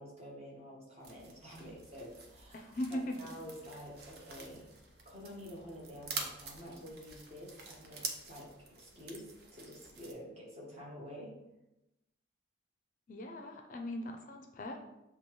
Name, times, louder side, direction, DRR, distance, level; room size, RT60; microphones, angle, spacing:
voice 1, 0.0-4.7 5.0-8.5 8.8-9.2 9.5-11.3, equal, 35° right, -4 dB, 1.3 m, -49 dB
sound 1, 1.0-10.1, right 4 dB, 55° right, 0.6 m, -47 dB
voice 2, 2.5-3.1 13.1-14.8, left 1 dB, 45° left, 4 dB, 0.4 m, -39 dB
6.7 x 2.3 x 3.1 m, 0.92 s
head